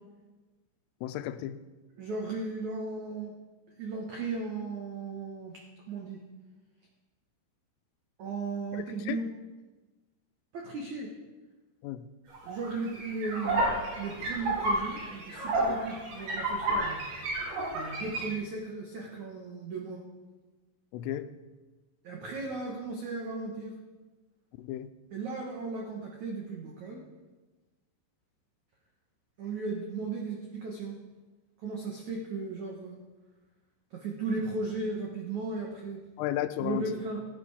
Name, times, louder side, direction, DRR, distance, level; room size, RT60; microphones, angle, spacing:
voice 1, 1.0-1.6 9.1-9.2 11.8-12.1 20.9-21.3 24.6-24.9 36.2-36.9, left 13 dB, 90° left, 11 dB, 3.2 m, -33 dB
voice 2, 2.0-3.4 3.8-5.6 5.9-6.2 8.2-9.3 10.5-11.1 12.4-13.7 14.0-17.1 17.7-20.0 22.0-23.7 25.1-27.0 29.4-31.0 31.6-33.0 33.9-36.0 36.6-37.2, right 3 dB, 90° right, 0 dB, 1.6 m, -36 dB
sound 1, 12.3-18.3, right 2 dB, 65° right, 6.2 m, -31 dB
16.5 x 10.5 x 4.9 m, 1.2 s
omnidirectional pair, 5.7 m